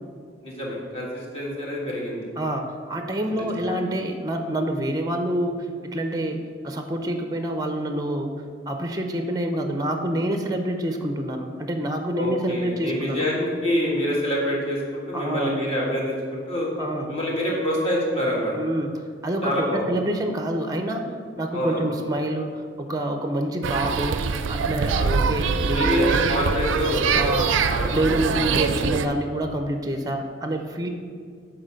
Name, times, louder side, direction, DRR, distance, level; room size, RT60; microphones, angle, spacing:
voice 1, 0.4-2.3 3.3-3.7 12.1-16.7 17.1-18.5 19.4-19.8 21.5-21.8 25.7-28.0, equal, 30° left, -4 dB, 1.6 m, -26 dB
voice 2, 2.4-8.3 8.7-13.2 15.1-15.5 16.8-17.2 18.5-26.2 27.1-27.5 27.9-30.9, right 1 dB, 20° right, 5 dB, 0.5 m, -27 dB
sound 1, 23.6-29.1, right 5 dB, 85° right, 0.4 m, -23 dB
6.6 x 4.4 x 6.2 m, 2.1 s
head